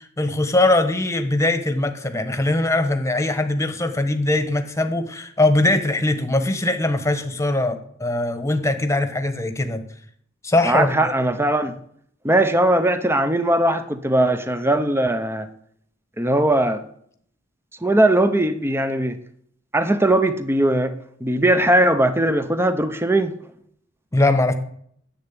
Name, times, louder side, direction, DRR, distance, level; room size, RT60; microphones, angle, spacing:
voice 1, 0.0-9.8 10.4-11.1 24.1-24.5, left 2 dB, 15° left, 8 dB, 1.2 m, -21 dB
voice 2, 10.7-11.8 12.2-15.5 16.2-16.8 17.8-19.2 19.7-20.9 21.2-23.3, right 1 dB, 10° right, 10 dB, 0.8 m, -19 dB
10.5 x 7.9 x 8.7 m, 0.65 s
head